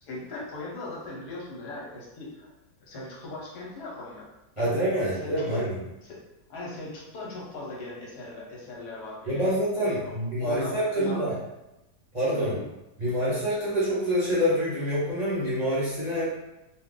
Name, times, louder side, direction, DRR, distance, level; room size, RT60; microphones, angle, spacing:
voice 1, 0.0-2.5 2.8-4.3 4.6-4.8 5.2-5.6 6.0-6.2 6.5-11.4 12.3-12.6, left 2 dB, 80° left, -4 dB, 1.4 m, -39 dB
voice 2, 4.6-5.7 9.3-11.4 12.1-12.5 13.0-16.3, equal, 35° right, -9 dB, 0.8 m, -26 dB
2.7 x 2.5 x 3.6 m, 0.94 s
omnidirectional pair, 1.7 m